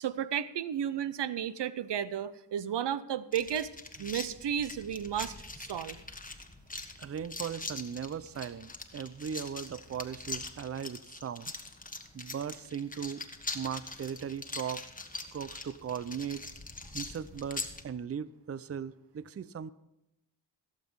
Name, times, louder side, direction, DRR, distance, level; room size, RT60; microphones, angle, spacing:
voice 1, 0.0-3.7 4.0-6.0, right 9 dB, 75° right, 16 dB, 0.7 m, -33 dB
sound 1, 3.3-17.8, left 3 dB, 20° left, 1.4 m, -43 dB
voice 2, 7.0-11.5 12.1-13.3 13.5-14.9 15.3-16.5 16.9-19.7, right 8 dB, 35° right, 17 dB, 0.5 m, -38 dB
16.0 x 7.5 x 5.5 m, 0.86 s
cardioid pair, 55°, 42 cm